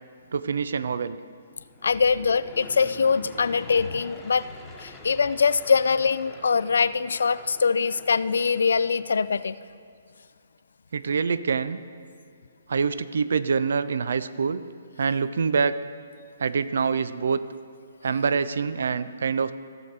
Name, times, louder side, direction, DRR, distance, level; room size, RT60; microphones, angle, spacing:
voice 1, 0.3-1.2 10.9-11.8 12.7-14.6 15.0-15.8 16.4-17.4 18.0-19.5, right 5 dB, 65° right, 14 dB, 0.4 m, -25 dB
Aircraft / Engine, 1.6-9.6, left 2 dB, 5° left, 1.2 m, -47 dB
voice 2, 1.8-4.5 4.8-9.6, left 5 dB, 65° left, 15 dB, 0.3 m, -23 dB
16.0 x 6.7 x 3.3 m, 2.2 s
figure-of-eight pair, 130°, 0 cm